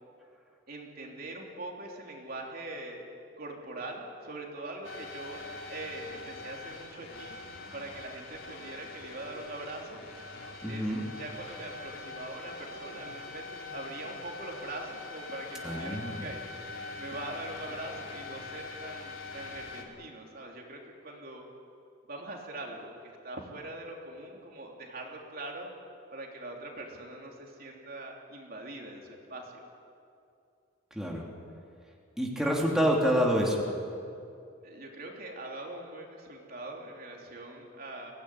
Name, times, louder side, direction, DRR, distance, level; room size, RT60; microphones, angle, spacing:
voice 1, 0.7-3.0 3.4-5.4 5.7-7.4 7.7-10.0 10.7-16.4 17.0-21.4 22.1-25.7 26.1-29.7 34.6-38.1, right 2 dB, 50° right, 0 dB, 3.4 m, -42 dB
sound 1, 4.8-19.8, left 3 dB, 85° left, 3.3 m, -43 dB
voice 2, 10.6-11.0 15.6-16.3 30.9-31.2 32.2-33.7, equal, 5° right, -2 dB, 3.0 m, -27 dB
23.5 x 17.5 x 10.0 m, 2.5 s
head